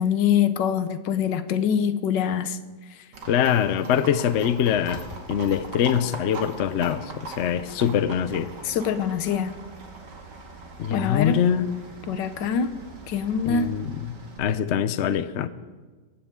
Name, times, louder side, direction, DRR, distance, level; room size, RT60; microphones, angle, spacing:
voice 1, 0.0-2.6 8.6-9.6 10.9-11.4 12.1-12.7 13.1-13.7, left 8 dB, 80° left, 12 dB, 1.4 m, -24 dB
Livestock farm animals working animals, 3.1-14.4, right 3 dB, 70° right, 2.4 m, -41 dB
voice 2, 3.3-5.0 5.3-8.5 10.8-11.7 13.4-15.5, left 9 dB, 65° left, 13 dB, 0.7 m, -24 dB
18.0 x 15.5 x 3.7 m, 1.4 s
omnidirectional pair, 1.9 m